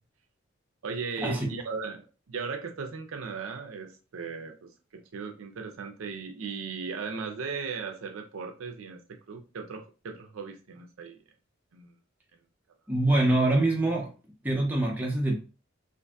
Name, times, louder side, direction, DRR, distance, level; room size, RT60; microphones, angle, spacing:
voice 1, 0.8-9.0 9.3-11.2 11.7-11.9, right 5 dB, 80° right, 0.5 m, -37 dB
voice 2, 12.9-14.1 14.4-15.4, right 2 dB, 10° right, 0.6 m, -24 dB
2.6 x 2.5 x 2.3 m
head